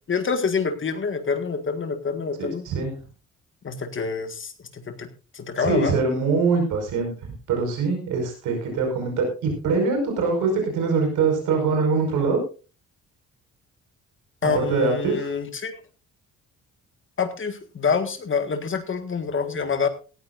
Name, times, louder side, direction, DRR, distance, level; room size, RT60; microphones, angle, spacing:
voice 1, 0.1-2.6 3.6-5.1 5.3-6.0 14.4-15.7 17.2-19.9, left 5 dB, 40° left, 9 dB, 1.7 m, -26 dB
voice 2, 2.4-3.0 5.6-7.1 7.5-12.4 14.4-15.3, right 4 dB, 90° right, 3 dB, 5.4 m, -23 dB
18.0 x 13.5 x 2.6 m, 0.33 s
cardioid pair, 90°, 30 cm